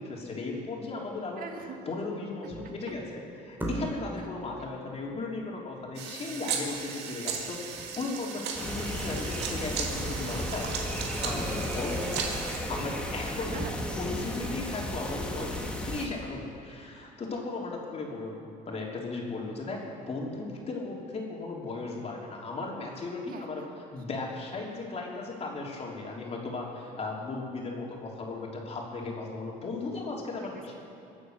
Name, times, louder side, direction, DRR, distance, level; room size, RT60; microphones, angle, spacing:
voice 1, 0.0-1.5 1.9-12.3 12.7-13.5 14.0-30.8, left 3 dB, 40° left, -2 dB, 3.6 m, -36 dB
voice 2, 1.4-1.8 4.6-4.7 13.5-13.8 23.3-23.8 29.9-30.1, right 6 dB, 55° right, 3 dB, 2.2 m, -43 dB
sound 1, 2.5-2.9 3.6-4.3 6.7-6.9 7.2-7.3 7.8-8.1 8.5-9.5 9.9-10.0, right 1 dB, 10° right, 3.1 m, -38 dB
sound 2, 6.0-12.6, right 6 dB, 85° right, 2.2 m, -36 dB
sound 3, 8.5-16.1, equal, 5° left, 2.2 m, -34 dB
23.0 x 8.9 x 6.5 m, 2.7 s
cardioid pair, 110°, 17 cm